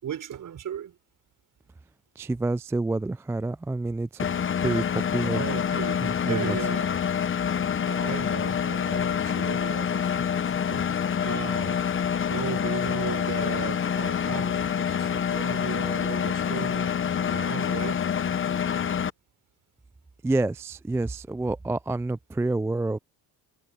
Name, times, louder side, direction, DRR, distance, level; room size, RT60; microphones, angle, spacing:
voice 1, 0.0-1.0 5.3-7.0 7.8-10.8 11.2-12.0 12.3-18.0, right 9 dB, 55° right, 4.8 m, -36 dB
voice 2, 2.2-4.3 4.6-5.4 6.0-6.6 20.2-23.0, right 2 dB, 5° right, 0.3 m, -28 dB
Engine, 4.2-19.1, left 8 dB, 35° left, 0.9 m, -27 dB
cardioid pair, 100°, 37 cm